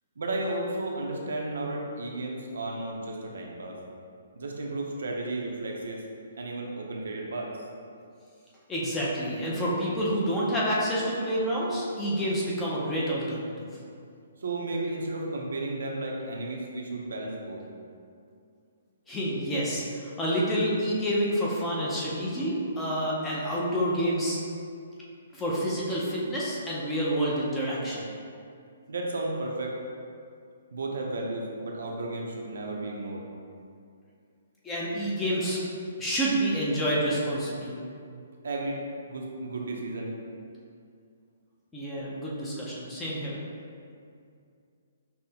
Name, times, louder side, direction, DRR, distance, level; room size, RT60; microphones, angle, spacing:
voice 1, 0.2-3.8 4.3-6.0 6.4-7.5 14.4-17.6 28.9-29.8 30.7-33.2 38.4-40.1, right 2 dB, 80° right, -1 dB, 0.6 m, -33 dB
voice 2, 8.7-13.7 19.1-24.4 25.3-28.0 34.6-35.6 36.0-37.8 41.7-43.4, equal, 10° left, -6 dB, 0.5 m, -28 dB
5.4 x 2.0 x 2.8 m, 2.4 s
hypercardioid pair, 170°, 0 cm